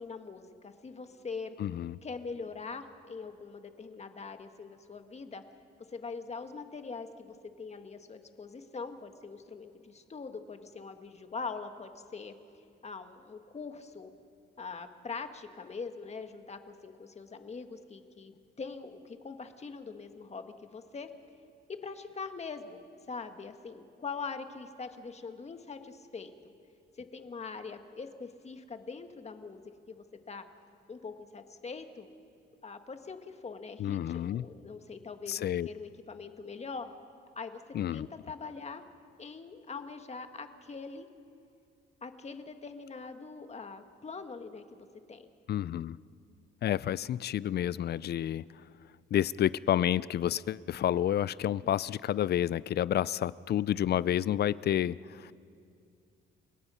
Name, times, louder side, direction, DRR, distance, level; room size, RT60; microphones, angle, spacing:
voice 1, 0.0-1.6 2.0-5.4 5.9-12.3 12.8-14.1 14.6-21.1 21.8-22.8 23.1-26.3 27.0-30.4 30.9-32.1 32.6-36.9 37.3-37.6 37.9-38.8 39.2-41.1 42.0-45.3 51.4-51.8, left 4 dB, 35° left, 7 dB, 1.6 m, -43 dB
voice 2, 1.6-2.0 33.8-34.4 35.3-35.7 37.7-38.1 45.5-46.0 46.6-48.4 49.1-55.3, left 11 dB, 55° left, 20 dB, 0.5 m, -30 dB
30.0 x 17.5 x 5.7 m, 2.5 s
cardioid pair, 90°, 20 cm